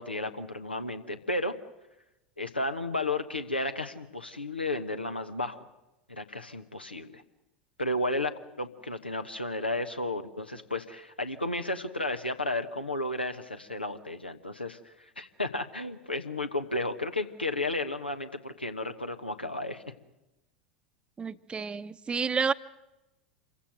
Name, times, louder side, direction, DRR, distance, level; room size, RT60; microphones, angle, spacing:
voice 1, 0.0-1.6 2.4-5.7 6.1-7.2 7.8-19.8, left 2 dB, 85° left, 7 dB, 1.2 m, -33 dB
voice 2, 21.2-22.5, right 5 dB, 20° right, 13 dB, 0.8 m, -30 dB
26.5 x 16.0 x 9.1 m, 1.0 s
figure-of-eight pair, 80°, 5 cm